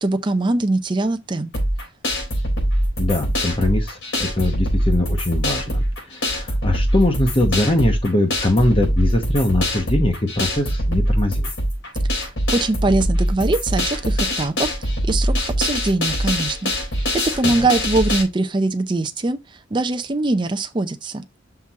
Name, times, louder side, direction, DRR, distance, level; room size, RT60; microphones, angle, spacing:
voice 1, 0.0-1.5 12.5-16.7 17.4-19.4 19.7-21.2, right 2 dB, 25° right, 0.5 m, -22 dB
sound 1, 1.5-18.2, equal, 70° left, 3.8 m, -22 dB
voice 2, 3.0-11.5 17.4-17.7, left 1 dB, 25° left, 1.0 m, -21 dB
5.9 x 4.4 x 4.6 m
head